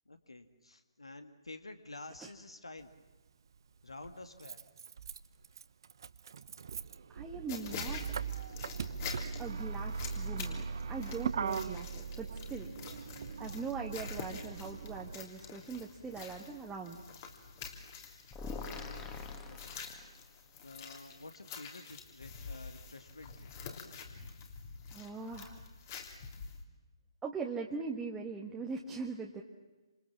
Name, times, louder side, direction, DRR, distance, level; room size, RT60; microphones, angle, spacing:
voice 1, 0.1-2.9 3.8-4.6 18.7-19.2 19.5-20.2 20.6-23.5, left 2 dB, 75° left, 8 dB, 2.1 m, -50 dB
Motor vehicle (road), 2.8-2.9 4.0-15.2, right 5 dB, 50° right, 1.0 m, -40 dB
voice 2, 7.1-8.0 9.4-10.6 10.9-12.7 13.4-17.0 24.9-25.6 27.2-29.4, right 4 dB, 10° right, -2 dB, 1.5 m, -41 dB
sound 1, 7.5-26.6, left 6 dB, 30° left, 3.3 m, -48 dB
sound 2, 18.3-20.4, left 4 dB, 15° left, 2.5 m, -44 dB
28.5 x 27.0 x 7.5 m, 1.2 s
figure-of-eight pair, 140°, 3 cm